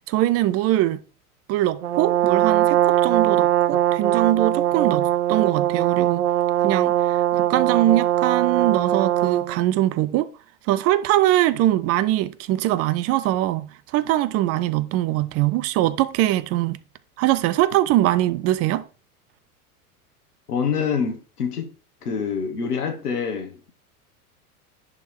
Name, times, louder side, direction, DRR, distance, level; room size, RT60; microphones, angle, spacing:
voice 1, 0.1-1.0 1.5-6.2 6.6-10.3 10.7-16.8 17.2-18.8, right 14 dB, 35° right, 0.5 m, -22 dB
Brass instrument, 1.8-9.6, right 12 dB, 80° right, 0.9 m, -21 dB
voice 2, 20.5-21.7 22.0-23.6, left 6 dB, 85° left, 1.8 m, -26 dB
10.5 x 3.6 x 4.4 m
hypercardioid pair, 90°, 45 cm